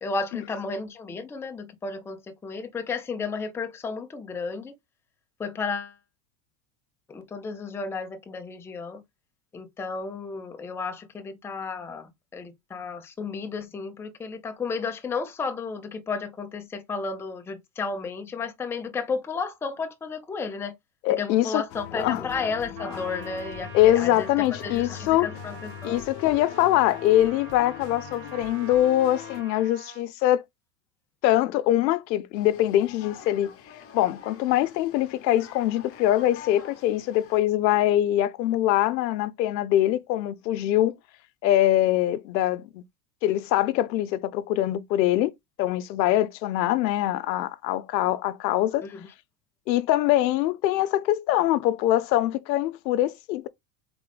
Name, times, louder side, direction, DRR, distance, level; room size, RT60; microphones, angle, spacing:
voice 1, 0.0-4.7 5.4-6.0 7.1-9.0 9.5-20.7 21.2-26.0 48.8-49.1, left 4 dB, 5° left, 0.4 m, -33 dB
voice 2, 21.0-21.6 22.0-22.2 23.7-25.3 25.8-30.4 31.2-33.5 33.9-41.0 41.4-42.8 43.2-45.3 45.6-48.9 49.7-53.5, left 13 dB, 90° left, 0.7 m, -23 dB
sound 1, 21.7-29.4, left 12 dB, 50° left, 0.7 m, -41 dB
Trumpet, 22.7-30.1, right 5 dB, 75° right, 2.4 m, -45 dB
sound 2, 32.3-37.4, left 8 dB, 30° left, 1.0 m, -47 dB
3.7 x 3.6 x 3.4 m
supercardioid pair, 120°, 50 cm